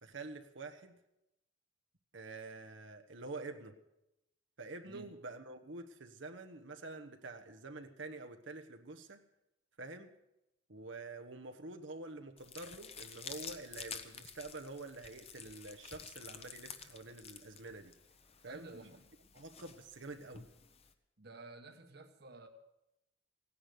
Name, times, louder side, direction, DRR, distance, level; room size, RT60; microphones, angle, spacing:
voice 1, 0.0-1.0 2.1-3.8 4.6-9.2 9.8-10.1 10.7-17.9 18.4-18.8 19.3-20.4, right 3 dB, 75° right, 5 dB, 1.3 m, -47 dB
voice 2, 4.8-5.2 18.5-19.0 21.2-22.5, right 2 dB, 55° right, 6 dB, 1.5 m, -53 dB
sound 1, 12.4-20.9, left 6 dB, 35° left, 1.0 m, -51 dB
16.5 x 10.0 x 7.9 m, 0.88 s
head